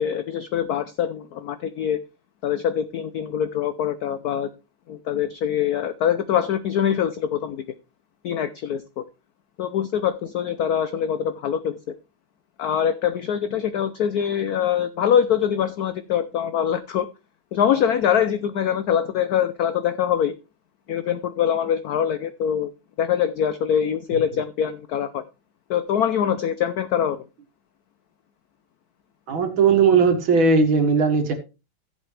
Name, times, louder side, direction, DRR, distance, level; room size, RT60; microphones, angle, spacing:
voice 1, 0.0-2.0 2.4-4.5 4.9-7.6 8.2-9.0 9.6-11.8 12.6-17.1 17.5-20.3 20.9-22.7 23.0-25.2 25.7-27.3, left 9 dB, 70° left, 12 dB, 0.9 m, -23 dB
voice 2, 29.3-31.3, right 5 dB, 70° right, 5 dB, 2.6 m, -18 dB
15.5 x 7.5 x 3.3 m, 0.29 s
omnidirectional pair, 2.3 m